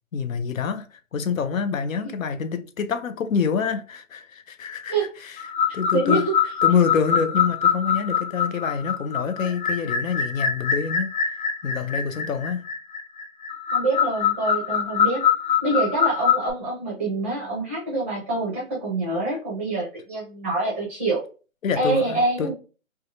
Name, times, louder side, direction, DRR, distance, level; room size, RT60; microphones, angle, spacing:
voice 1, 0.1-4.9 5.2-5.4 5.7-6.3 6.6-11.2 11.6-12.7 21.6-22.5, left 6 dB, 70° left, 0.6 m, -26 dB
sound 1, 5.4-16.5, left 7 dB, 35° left, 0.9 m, -24 dB
voice 2, 5.9-6.3 13.7-15.2 15.6-21.2 21.7-22.5, right 2 dB, 10° right, 0.5 m, -25 dB
3.4 x 2.2 x 2.6 m
hypercardioid pair, 145°, 41 cm